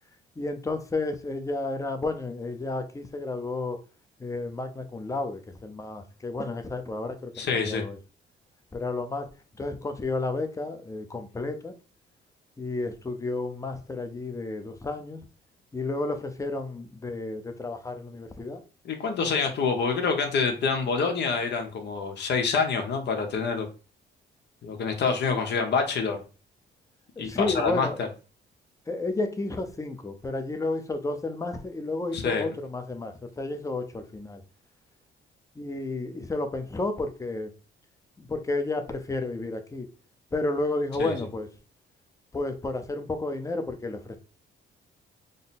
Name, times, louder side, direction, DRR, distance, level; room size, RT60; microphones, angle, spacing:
voice 1, 0.4-3.8 4.2-8.0 8.7-9.3 9.6-11.7 12.6-15.2 15.7-18.6 27.2-28.0 28.9-34.4 35.6-37.5 38.2-39.9 40.3-41.5 42.3-44.2, left 2 dB, 15° left, 0.7 m, -31 dB
voice 2, 7.4-7.8 18.8-23.7 24.6-26.2 27.2-28.1 32.1-32.5 41.0-41.1, left 5 dB, 60° left, 1.0 m, -26 dB
3.8 x 2.0 x 4.1 m
cardioid pair, 90°, 20 cm